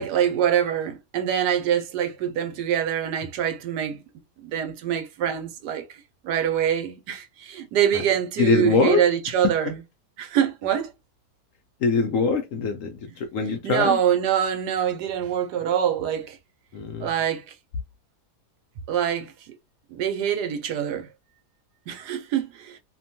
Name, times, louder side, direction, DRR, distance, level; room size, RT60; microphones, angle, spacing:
voice 1, 0.0-4.0 4.4-5.8 6.2-9.8 10.2-10.9 13.6-16.4 17.0-17.4 18.9-19.3 19.9-21.1 21.9-22.8, right 9 dB, 85° right, 1.2 m, -24 dB
voice 2, 8.4-9.0 9.6-9.7 11.8-12.9 13.2-14.0 16.7-17.1, left 4 dB, 70° left, 0.8 m, -23 dB
2.9 x 2.2 x 2.7 m
omnidirectional pair, 1.8 m